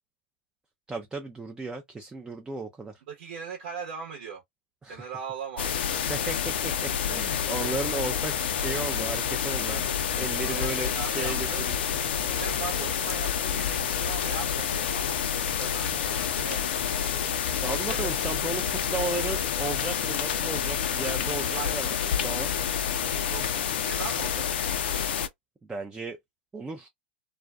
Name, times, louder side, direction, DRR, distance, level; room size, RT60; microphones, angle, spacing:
voice 1, 0.9-2.9 4.8-5.1 6.1-9.8 10.1-11.8 15.8-15.9 17.6-21.9 22.2-22.5 25.7-26.2 26.5-26.9, right 3 dB, 10° right, 0.4 m, -35 dB
voice 2, 3.1-4.4 4.9-5.7 7.1-7.3 7.6-7.8 10.4-11.6 12.2-15.2 15.6-16.7 21.5-21.7 22.9-24.4, right 6 dB, 60° right, 0.9 m, -39 dB
sound 1, 5.6-25.3, left 8 dB, 65° left, 0.4 m, -28 dB
2.4 x 2.2 x 2.3 m
hypercardioid pair, 95°, 6 cm